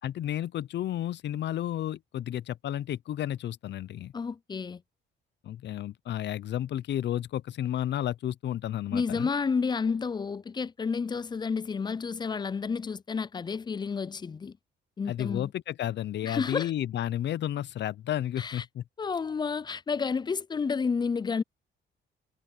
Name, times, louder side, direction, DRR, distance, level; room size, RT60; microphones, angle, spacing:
voice 1, 0.0-4.1 5.4-9.3 15.1-18.8, left 11 dB, 60° left, 0.6 m, -32 dB
voice 2, 4.1-4.8 8.9-14.6 15.0-15.5 16.2-16.7 18.4-18.6 19.0-21.4, left 5 dB, 20° left, 0.4 m, -30 dB
cardioid pair, 90°, 20 cm